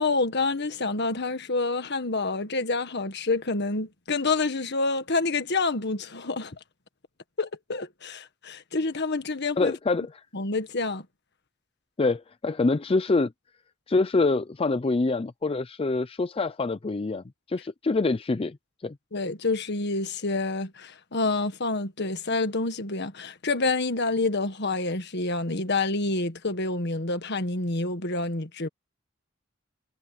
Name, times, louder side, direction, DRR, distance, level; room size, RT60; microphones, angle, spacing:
voice 1, 0.0-6.5 7.4-9.7 10.3-11.0 19.1-28.7, left 3 dB, 55° left, 1.6 m, -28 dB
voice 2, 9.6-10.2 12.0-13.3 13.9-18.6 18.8-19.0, left 3 dB, 30° left, 0.5 m, -25 dB
head